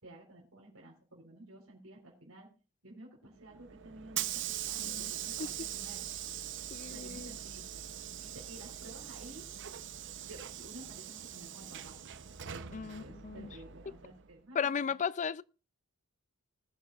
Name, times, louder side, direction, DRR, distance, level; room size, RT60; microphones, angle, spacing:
voice 1, 0.0-2.5 2.8-6.0 6.8-7.7 8.2-9.5 10.2-12.0 12.5-14.9, right 1 dB, 80° right, 4.0 m, -52 dB
Hiss / Sliding door, 3.4-14.3, right 11 dB, 60° right, 0.8 m, -42 dB
voice 2, 4.8-5.1 5.4-5.5 6.7-7.4 12.7-13.5 14.5-15.4, left 6 dB, 35° left, 0.4 m, -35 dB
20.0 x 9.4 x 2.4 m
head